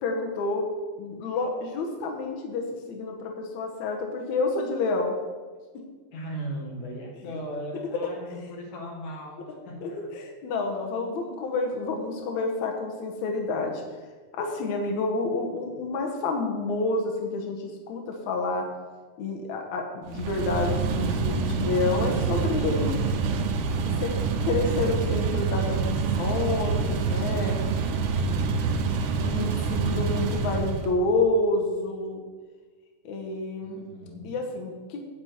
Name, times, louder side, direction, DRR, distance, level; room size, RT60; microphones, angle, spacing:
voice 1, 0.0-0.6 1.0-5.1 9.8-13.8 14.3-18.7 19.2-22.9 24.0-24.1 24.4-27.6 29.2-32.2 33.0-33.8 34.2-35.0, left 3 dB, 80° left, 1 dB, 1.6 m, -29 dB
voice 2, 6.1-10.1 33.6-34.4, right 1 dB, 55° left, -1 dB, 2.5 m, -38 dB
sound 1, 20.1-30.9, right 5 dB, 85° right, 2.9 m, -26 dB
10.5 x 4.4 x 7.9 m, 1.4 s
omnidirectional pair, 4.9 m